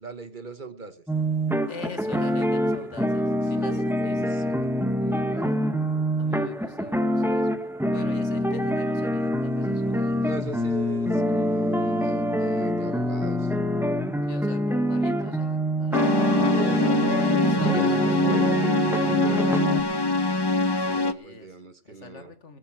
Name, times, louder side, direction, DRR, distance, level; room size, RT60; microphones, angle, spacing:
voice 1, 0.0-1.0 3.6-5.6 10.2-13.5 16.5-17.3 17.7-18.6 18.8-19.9 20.9-22.3, right 4 dB, 45° right, 12 dB, 1.3 m, -39 dB
sound 1, 1.1-19.8, equal, ahead, 1.1 m, -25 dB
voice 2, 1.7-4.4 6.2-7.5 7.9-10.3 14.3-16.2 17.4-18.5 20.8-21.5 21.9-22.6, left 4 dB, 75° left, 10 dB, 2.1 m, -43 dB
sound 2, 15.9-21.1, left 2 dB, 25° left, 0.7 m, -24 dB
20.0 x 8.7 x 6.2 m, 0.39 s
omnidirectional pair, 1.2 m